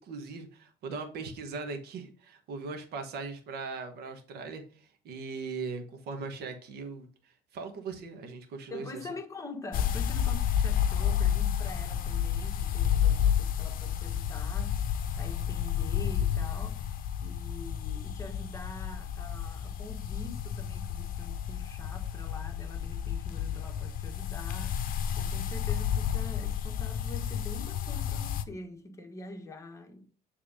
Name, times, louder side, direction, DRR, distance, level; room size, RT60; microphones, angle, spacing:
voice 1, 0.0-7.1 7.5-8.9, right 4 dB, 75° right, 1.4 m, -39 dB
voice 2, 8.7-24.8 25.2-30.1, left 2 dB, 20° left, 1.4 m, -45 dB
sound 1, 9.7-28.4, left 9 dB, 55° left, 0.7 m, -31 dB
7.4 x 3.6 x 5.0 m
cardioid pair, 110°, 17 cm